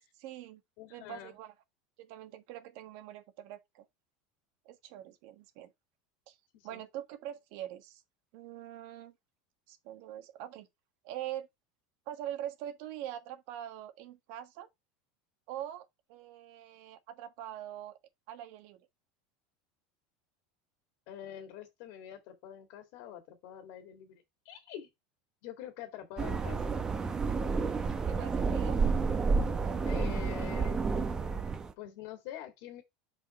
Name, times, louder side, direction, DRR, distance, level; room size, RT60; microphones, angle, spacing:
voice 1, 0.0-0.6 0.9-1.5 2.0-3.9 4.6-5.7 6.3-6.4 6.6-8.0 8.3-9.1 9.7-10.7 11.0-11.5 12.1-14.7 15.5-18.0 18.3-18.9 28.1-28.8, right 12 dB, 60° right, 1.5 m, -43 dB
voice 2, 0.8-1.4 6.5-6.8 21.1-24.9 25.4-26.8 29.9-30.8 31.8-32.8, left 10 dB, 60° left, 2.1 m, -45 dB
sound 1, 26.2-31.7, right 4 dB, 20° right, 1.0 m, -30 dB
6.2 x 5.5 x 4.3 m
supercardioid pair, 140°, 4 cm